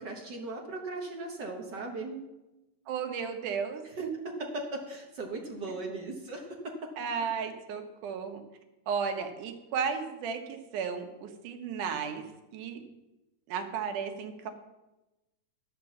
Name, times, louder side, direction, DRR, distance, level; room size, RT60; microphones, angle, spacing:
voice 1, 0.0-2.3 4.4-6.6, right 2 dB, 55° right, 1 dB, 1.2 m, -38 dB
voice 2, 2.9-4.1 7.0-8.4 8.9-12.2 12.5-12.8 13.5-14.5, right 6 dB, 85° right, 5 dB, 2.6 m, -34 dB
11.5 x 6.0 x 7.1 m, 1.0 s
omnidirectional pair, 3.5 m